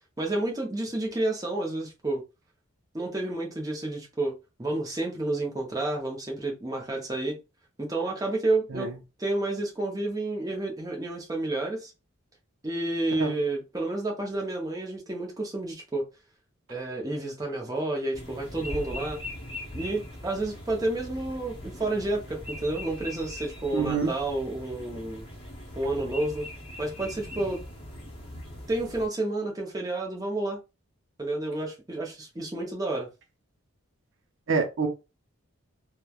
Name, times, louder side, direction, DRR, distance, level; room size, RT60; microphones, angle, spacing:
voice 1, 0.2-2.2 2.9-4.3 4.6-7.4 7.8-8.9 9.2-11.9 12.6-16.1 16.7-19.2 19.7-25.3 25.8-26.5 26.8-27.6 28.7-30.6 31.2-33.1, right 2 dB, 15° right, 0.6 m, -30 dB
sound 1, 18.1-29.1, left 1 dB, 25° left, 0.8 m, -41 dB
voice 2, 23.7-24.1 34.5-34.9, right 5 dB, 60° right, 0.5 m, -26 dB
3.0 x 2.1 x 2.3 m
head